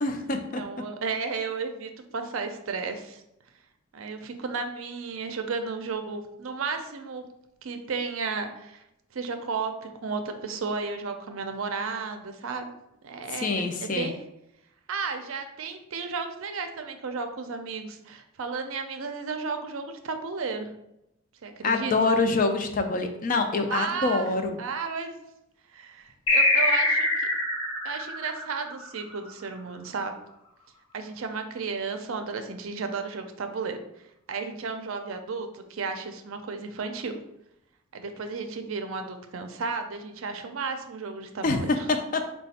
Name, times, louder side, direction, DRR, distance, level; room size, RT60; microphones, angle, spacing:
voice 1, 0.0-0.6 13.4-14.1 21.6-24.6 41.4-41.6 42.1-42.2, left 3 dB, 40° left, 5 dB, 0.4 m, -25 dB
voice 2, 0.6-3.2 3.9-7.2 7.6-8.8 9.1-12.7 13.0-14.2 14.9-20.7 21.4-22.2 23.7-24.3 24.6-25.1 25.7-27.3 27.8-30.2 30.9-33.8 34.3-37.2 37.9-41.9, right 4 dB, 70° right, 7 dB, 0.5 m, -33 dB
sound 1, 26.3-29.3, left 2 dB, 80° left, 1.1 m, -24 dB
4.2 x 2.2 x 4.1 m, 0.83 s
head